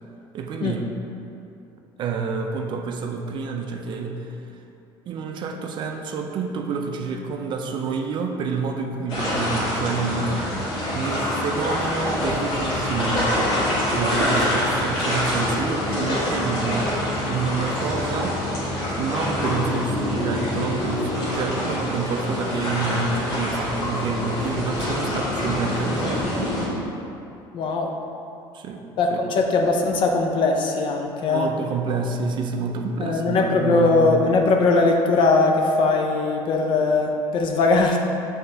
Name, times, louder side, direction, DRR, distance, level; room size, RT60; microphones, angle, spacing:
voice 1, 0.3-0.9 2.0-4.6 5.1-10.5 10.9-13.6 13.9-16.9 17.2-18.5 18.9-26.5 28.5-28.8 29.1-29.2 31.2-34.0, right 4 dB, 50° right, 4 dB, 0.4 m, -28 dB
sound 1, 9.1-26.7, left 1 dB, 75° left, 1.4 m, -25 dB
voice 2, 27.5-27.9 29.0-31.5 33.0-38.0, left 3 dB, 50° left, 2 dB, 0.4 m, -20 dB
5.9 x 3.3 x 2.7 m, 2.7 s
cardioid pair, 115°, 11 cm